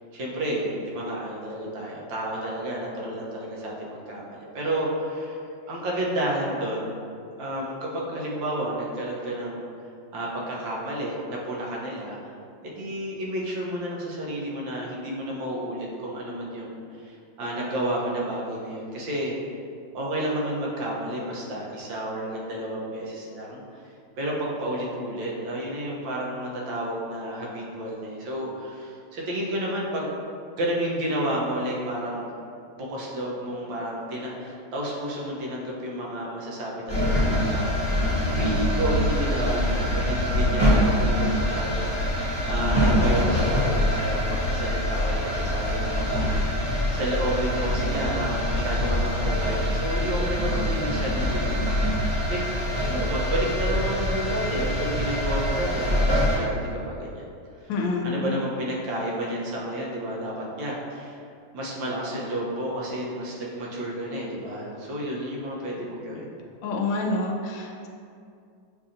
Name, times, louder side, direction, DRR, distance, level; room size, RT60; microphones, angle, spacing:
voice 1, 0.1-5.4 5.7-7.0 7.4-9.6 10.1-12.2 12.6-19.3 19.9-23.8 24.2-30.1 30.6-32.3 32.8-51.8 52.3-52.4 52.7-57.3 58.0-61.2 61.5-66.3, right 1 dB, 85° right, -4 dB, 1.6 m, -31 dB
sound 1, 36.9-56.4, left 1 dB, 5° right, 1.1 m, -24 dB
voice 2, 57.7-58.3 66.6-67.9, left 2 dB, 85° left, 1 dB, 1.3 m, -27 dB
7.0 x 2.7 x 2.5 m, 2.4 s
omnidirectional pair, 2.0 m